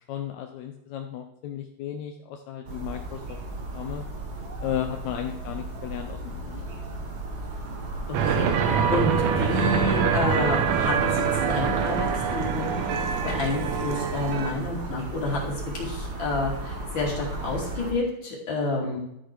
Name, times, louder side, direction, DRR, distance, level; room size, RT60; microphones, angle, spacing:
voice 1, 0.0-3.4 3.7-4.0 4.6-6.7, left 10 dB, 75° left, 4 dB, 1.7 m, -34 dB
sound 1, 2.6-17.9, right 2 dB, 90° right, 0.8 m, -35 dB
sound 2, 8.1-14.5, right 7 dB, 70° right, 2.0 m, -25 dB
voice 2, 8.2-12.7 13.2-15.4 15.7-19.0, left 3 dB, 35° left, -3 dB, 3.2 m, -29 dB
12.5 x 6.4 x 4.7 m, 0.80 s
omnidirectional pair, 4.0 m